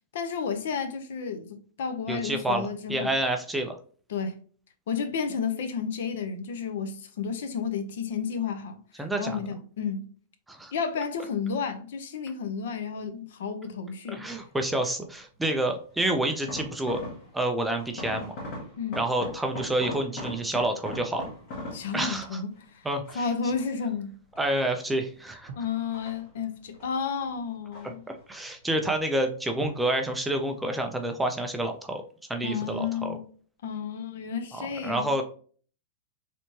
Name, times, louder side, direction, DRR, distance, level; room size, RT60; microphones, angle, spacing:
voice 1, 0.1-3.2 4.1-4.4 4.9-8.8 9.2-10.1 10.7-14.3 18.8-19.0 21.7-22.8 23.1-24.1 25.6-28.0 32.4-33.3 33.6-35.1, left 6 dB, 65° left, 0.6 m, -32 dB
voice 2, 2.1-3.8 9.0-9.4 10.5-10.7 14.1-17.0 17.3-18.3 19.0-21.3 21.9-22.4 22.8-23.3 24.4-25.5 28.1-32.0 32.3-33.2 34.5-35.2, right 1 dB, 5° right, 0.3 m, -28 dB
sound 1, 14.3-14.7 15.6-17.5 17.8-22.5 23.0-23.9 24.3-25.2 25.7-27.0 27.3-28.5 28.7-29.3 29.8-30.1 30.4-30.5, left 1 dB, 35° left, 1.2 m, -41 dB
Drum, 25.5-27.0 29.6-31.8, right 5 dB, 50° right, 0.7 m, -47 dB
3.3 x 3.0 x 2.7 m
supercardioid pair, 170°, 0 cm